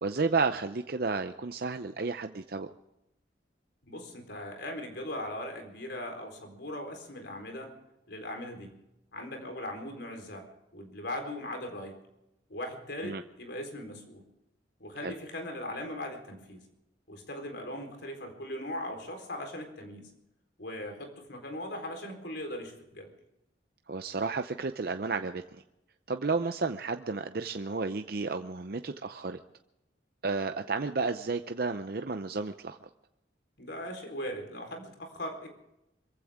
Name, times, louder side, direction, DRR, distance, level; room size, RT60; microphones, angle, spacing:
voice 1, 0.0-2.7 13.0-13.2 15.0-15.1 23.9-25.4 26.1-29.4 30.2-32.8, right 4 dB, 55° right, 7 dB, 0.7 m, -32 dB
voice 2, 3.8-7.7 8.1-8.7 9.1-12.0 12.5-14.2 14.8-16.6 17.1-20.1 20.6-23.1 33.6-35.5, left 1 dB, 65° left, 4 dB, 4.1 m, -39 dB
25.5 x 15.0 x 3.6 m, 0.89 s
head